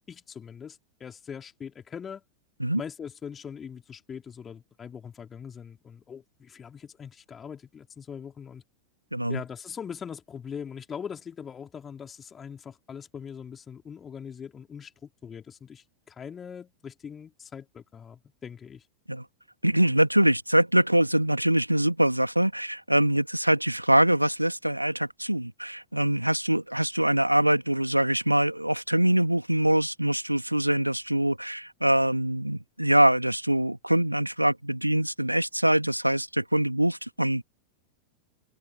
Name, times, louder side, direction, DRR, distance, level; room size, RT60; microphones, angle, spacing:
voice 1, 0.1-2.2 2.8-8.6 9.3-18.8, left 7 dB, 20° left, 4.2 m, -41 dB
voice 2, 9.1-9.4 19.1-19.3 19.6-37.4, right 1 dB, 90° right, 2.5 m, -24 dB
figure-of-eight pair, 90°, 0 cm